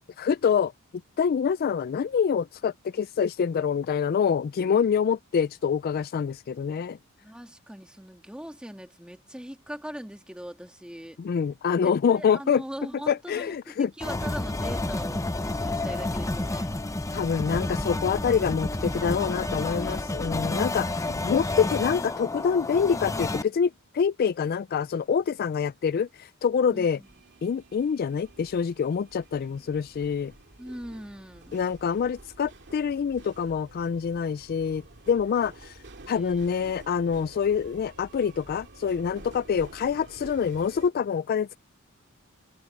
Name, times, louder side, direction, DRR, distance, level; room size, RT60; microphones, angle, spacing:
voice 1, 0.2-0.7 1.2-7.0 11.2-12.6 13.1-13.9 17.1-27.0 27.4-30.3 31.5-35.8 36.1-41.6, left 6 dB, 45° left, 0.3 m, -26 dB
voice 2, 7.2-11.2 11.8-16.8 18.9-20.6 26.7-27.1 30.6-31.6 36.0-36.5, equal, 5° right, 1.8 m, -41 dB
sound 1, 14.0-23.4, left 2 dB, 15° left, 0.7 m, -30 dB
sound 2, 27.0-40.9, right 2 dB, 55° right, 2.4 m, -49 dB
head